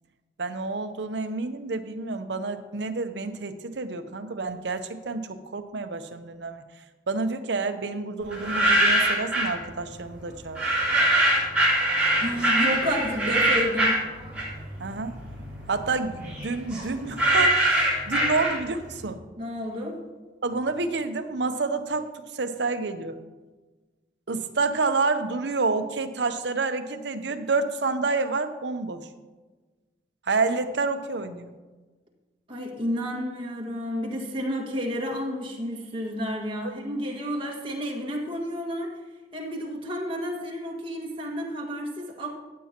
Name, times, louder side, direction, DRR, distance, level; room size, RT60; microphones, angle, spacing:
voice 1, 0.4-6.6 7.1-10.8 14.8-15.2 15.7-17.8 18.1-19.2 20.4-22.1 22.3-23.2 24.3-29.1 30.3-31.5 36.6-36.7, right 3 dB, 70° right, 8 dB, 0.7 m, -29 dB
sound 1, 8.3-9.6 10.5-14.8 15.1-18.9, right 1 dB, 5° right, 3.7 m, -23 dB
voice 2, 12.2-14.0 19.4-20.0 32.5-38.9 39.3-42.3, equal, 30° right, -1 dB, 1.7 m, -31 dB
15.0 x 8.4 x 2.9 m, 1.3 s
head